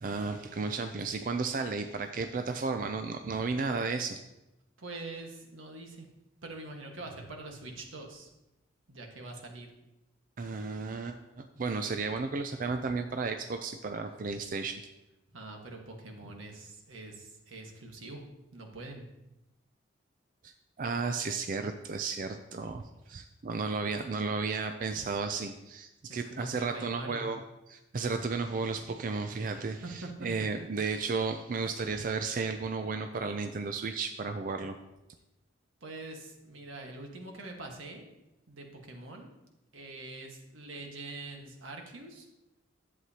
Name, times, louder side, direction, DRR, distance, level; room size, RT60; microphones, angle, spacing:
voice 1, 0.0-4.2 10.4-14.8 20.4-20.5 20.8-34.8, right 4 dB, 40° right, 7 dB, 0.4 m, -33 dB
voice 2, 4.8-6.1 6.4-8.3 8.9-9.7 15.3-18.2 18.5-19.1 26.1-27.2 29.8-30.3 35.8-38.0 38.5-39.3 39.7-42.3, right 2 dB, 90° right, 2 dB, 1.4 m, -44 dB
11.0 x 7.6 x 2.8 m, 0.95 s
head